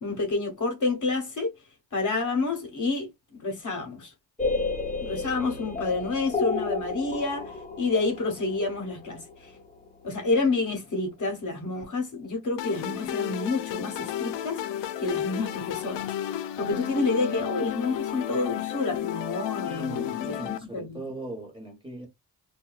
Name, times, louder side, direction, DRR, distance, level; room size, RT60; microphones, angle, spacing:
voice 1, 0.0-1.5 1.9-4.1 5.0-9.5 10.0-14.6 15.0-16.1 16.5-21.0, left 3 dB, 45° left, 1.0 m, -29 dB
sound 1, 4.4-10.2, left 3 dB, 20° left, 0.6 m, -32 dB
sound 2, 12.6-20.6, left 11 dB, 80° left, 0.5 m, -32 dB
voice 2, 19.6-22.1, right 1 dB, 10° right, 1.2 m, -39 dB
2.6 x 2.4 x 2.3 m
cardioid pair, 95°, 42 cm